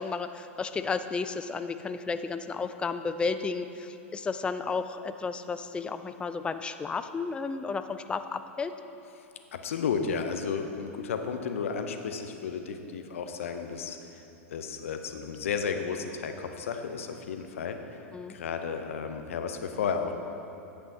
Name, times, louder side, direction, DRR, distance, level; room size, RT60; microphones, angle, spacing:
voice 1, 0.0-8.7 18.1-18.4, left 4 dB, 15° left, 10 dB, 0.3 m, -33 dB
voice 2, 9.2-14.2 14.5-18.0 18.3-20.1, left 6 dB, 75° left, 7 dB, 0.6 m, -33 dB
10.5 x 8.2 x 2.8 m, 2.8 s
hypercardioid pair, 95°, 7 cm